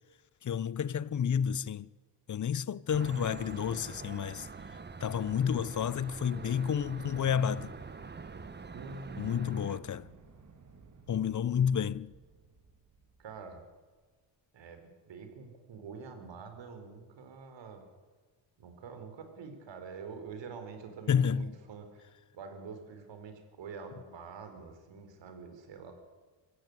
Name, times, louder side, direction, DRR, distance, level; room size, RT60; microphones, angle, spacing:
voice 1, 0.4-1.9 2.3-4.5 5.0-7.7 9.2-10.0 11.1-12.1 21.1-21.5, left 8 dB, 40° left, 0.8 m, -30 dB
sound 1, 2.9-9.8, right 4 dB, 25° right, 1.1 m, -45 dB
Coastal Freight, 4.5-14.1, right 4 dB, 40° right, 3.1 m, -58 dB
voice 2, 8.7-9.9 13.2-13.6 14.5-17.9 18.6-22.1 22.3-25.9, right 5 dB, 75° right, 4.4 m, -46 dB
25.5 x 14.5 x 9.7 m
cardioid pair, 95°, 44 cm